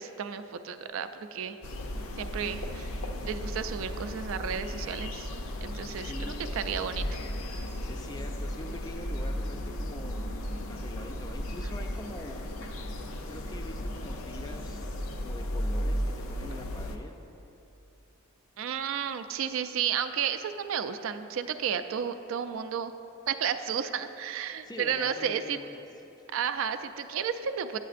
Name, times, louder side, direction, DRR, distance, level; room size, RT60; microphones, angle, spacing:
voice 1, 0.0-1.6 2.2-5.3 5.6-7.0 18.6-22.9 23.3-25.6 26.3-27.8, right 7 dB, 65° right, 10 dB, 0.3 m, -32 dB
sound 1, 1.6-17.0, equal, 70° left, 0.6 m, -35 dB
voice 2, 6.0-6.6 7.9-12.4 13.2-14.9 15.2-17.1 24.6-25.8 26.2-26.3, left 1 dB, 20° left, 5 dB, 0.3 m, -44 dB
9.2 x 8.7 x 2.5 m, 2.9 s
head